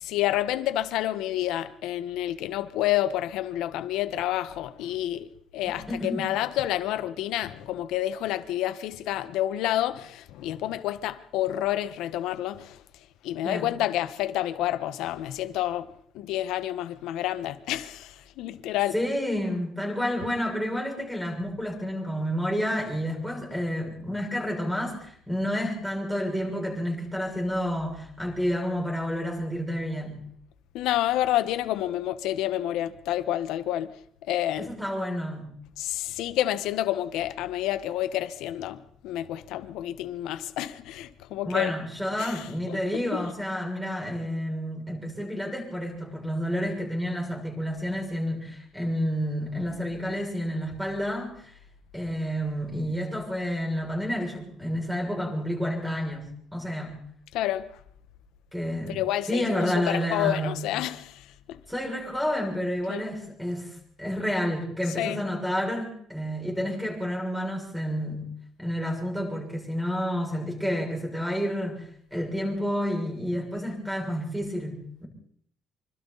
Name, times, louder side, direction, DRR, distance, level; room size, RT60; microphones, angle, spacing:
voice 1, 0.0-12.8 13.2-15.9 16.1-18.9 30.7-33.9 34.3-34.7 35.8-41.7 42.2-42.8 43.1-43.2 57.3-57.7 58.9-61.6 62.9-63.0 65.0-65.3, left 13 dB, 85° left, 1.4 m, -29 dB
voice 2, 5.9-6.3 13.4-13.7 18.9-30.2 34.6-35.5 41.4-51.6 51.9-56.3 56.5-57.0 58.5-59.0 59.3-60.7 61.7-63.7 64.0-68.3 68.6-71.8 72.1-75.1, equal, ahead, 6.9 m, -30 dB
26.0 x 25.5 x 4.2 m
cardioid pair, 155°, 0 cm